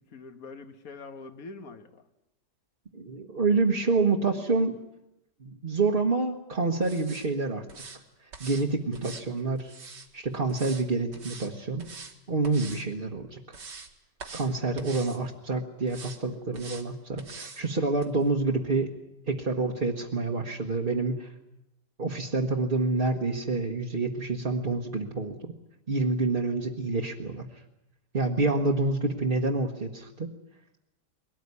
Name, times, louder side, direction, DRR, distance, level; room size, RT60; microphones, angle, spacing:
voice 1, 0.1-2.0 28.6-28.7, left 4 dB, 55° left, 9 dB, 1.8 m, -44 dB
voice 2, 2.9-4.8 5.4-7.6 8.4-9.7 10.1-11.8 12.3-13.6 14.3-18.9 19.3-21.3 22.0-25.5 25.9-27.5 28.1-30.3, right 3 dB, 35° right, 0 dB, 1.5 m, -27 dB
sound 1, 6.8-7.3 7.7-8.0 8.3-8.7 8.9-10.1 10.5-10.8 11.1-11.5 11.8-12.1 12.4-12.8 13.2-13.9 14.2-14.5 14.8-15.2 15.9-16.2 16.5-16.8 17.2-17.6 18.0-18.1, right 4 dB, 75° right, 2.7 m, -44 dB
22.5 x 18.5 x 9.7 m, 0.89 s
omnidirectional pair, 1.9 m